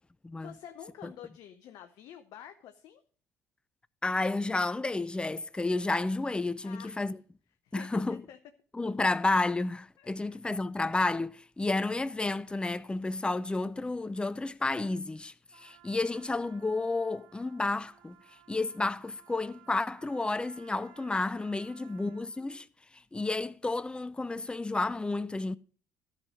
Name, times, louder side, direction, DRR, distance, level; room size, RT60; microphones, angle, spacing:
voice 1, 0.4-3.0 6.6-7.1 7.6-8.4 10.0-10.4 21.7-22.2, left 10 dB, 60° left, 0.7 m, -49 dB
voice 2, 4.0-7.2 7.7-8.2 8.7-18.2 18.5-22.7 23.1-25.6, left 2 dB, 10° left, 0.5 m, -31 dB
Trumpet, 15.5-22.5, right 10 dB, 65° right, 2.2 m, -58 dB
13.5 x 5.7 x 5.0 m
hypercardioid pair, 55°, 8 cm